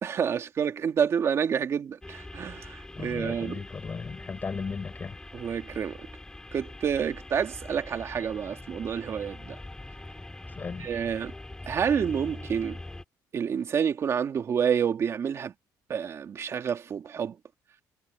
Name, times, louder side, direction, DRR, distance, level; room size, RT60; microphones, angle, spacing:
voice 1, 0.0-3.6 5.3-6.0 6.5-9.6 10.8-11.3 11.7-12.8 13.3-15.5 15.9-17.4, right 7 dB, 45° right, 2.3 m, -28 dB
sound 1, 2.0-13.0, left 2 dB, 10° left, 6.1 m, -43 dB
voice 2, 3.0-5.2 10.5-10.9, left 5 dB, 30° left, 5.3 m, -36 dB
cardioid pair, 125°, 7 cm